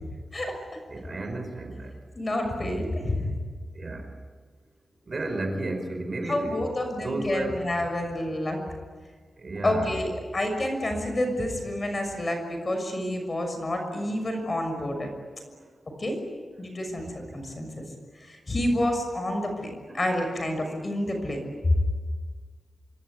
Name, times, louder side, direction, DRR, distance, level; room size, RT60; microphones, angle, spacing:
voice 1, 0.3-0.8 2.1-3.4 6.3-8.6 9.6-15.1 16.0-16.2 16.6-17.1 17.3-17.8 18.3-21.8, left 1 dB, 30° left, 5 dB, 6.2 m, -28 dB
voice 2, 0.9-1.9 3.7-4.1 5.1-6.6 6.8-7.6 9.4-10.0 16.9-17.1 19.9-20.0, right 2 dB, 40° right, 5 dB, 4.8 m, -33 dB
26.5 x 23.0 x 9.7 m, 1.5 s
wide cardioid pair, 160°, 0 cm